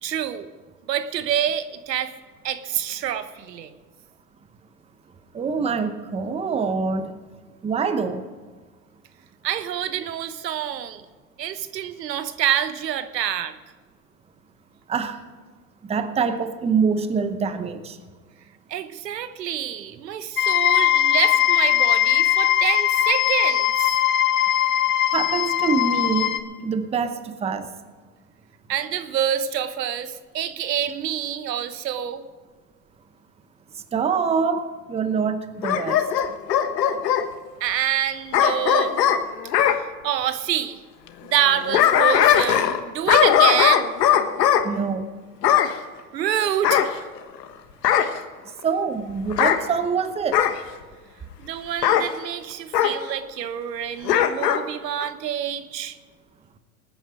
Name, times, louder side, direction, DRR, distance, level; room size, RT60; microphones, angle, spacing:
voice 1, 0.0-0.5 0.9-2.1 2.4-3.7 9.4-11.0 11.4-13.6 18.7-24.0 28.7-32.2 37.6-39.0 39.6-40.8 41.2-43.9 46.1-46.9 51.4-56.0, right 10 dB, 85° right, 11 dB, 1.2 m, -27 dB
voice 2, 5.3-7.1 7.6-8.2 14.9-15.2 15.8-18.0 25.1-27.7 33.9-36.0 44.6-45.1 48.6-50.4, right 5 dB, 15° right, 9 dB, 0.8 m, -25 dB
sound 1, 20.4-26.4, left 11 dB, 20° left, 0.8 m, -20 dB
Bark / Growling, 35.6-37.3 38.3-39.8 41.4-42.8 43.1-44.6 45.4-45.7 46.6-47.4 47.8-48.2 49.3-49.6 50.3-50.6 51.8-52.1 52.7-53.0 54.0-54.6 55.0-55.1, left 10 dB, 75° left, 1.4 m, -19 dB
19.0 x 9.8 x 5.0 m, 1.4 s
hypercardioid pair, 115°, 48 cm